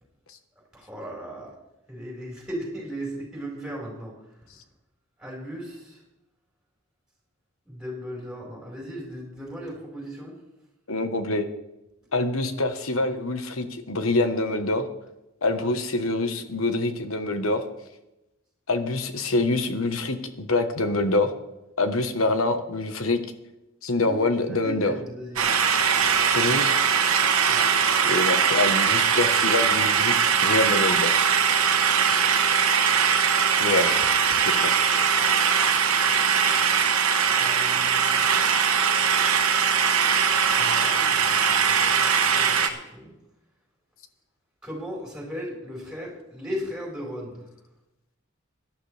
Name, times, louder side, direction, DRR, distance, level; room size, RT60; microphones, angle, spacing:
voice 1, 0.7-1.6 1.9-4.4 5.2-6.0 7.7-10.4 23.9-24.2 24.5-25.5 27.4-27.7 31.4-31.9 37.4-38.3 40.5-41.5 42.1-43.1 44.6-47.4, equal, 5° right, -3 dB, 4.9 m, -37 dB
voice 2, 10.9-11.5 12.1-14.9 15.4-17.7 18.7-21.3 21.8-23.2 23.8-24.9 26.3-26.7 28.0-30.1 30.4-31.2 33.6-34.0 34.6-34.8, left 2 dB, 75° left, 8 dB, 1.3 m, -25 dB
sound 1, 25.4-42.7, right 7 dB, 90° right, 1.3 m, -21 dB
18.0 x 12.0 x 3.4 m, 0.91 s
head